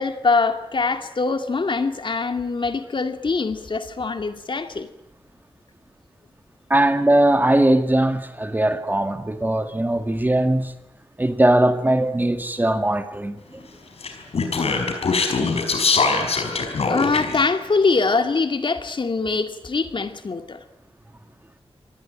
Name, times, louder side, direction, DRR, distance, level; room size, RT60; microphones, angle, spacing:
voice 1, 0.0-4.9 16.9-20.6, left 4 dB, 55° left, 2.2 m, -23 dB
voice 2, 6.7-10.8 11.2-13.6, right 1 dB, 20° right, 2.1 m, -20 dB
Speech, 14.0-17.4, left 4 dB, 80° left, 5.0 m, -22 dB
26.5 x 19.0 x 9.0 m
wide cardioid pair, 90°, 10 cm